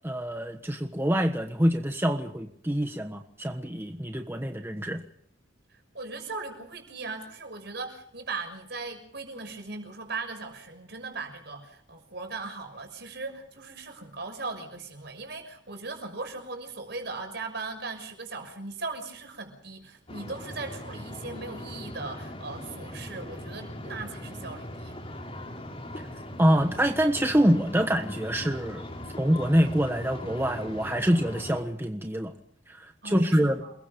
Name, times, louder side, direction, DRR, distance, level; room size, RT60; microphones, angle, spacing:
voice 1, 0.0-5.0 26.1-28.9 29.2-32.3 32.7-33.6, equal, 10° right, 5 dB, 1.3 m, -25 dB
voice 2, 5.7-25.0 33.0-33.7, right 3 dB, 60° right, 5 dB, 6.4 m, -38 dB
sound 1, 20.1-31.6, left 1 dB, 30° left, 4.7 m, -40 dB
29.0 x 21.5 x 5.3 m, 0.63 s
head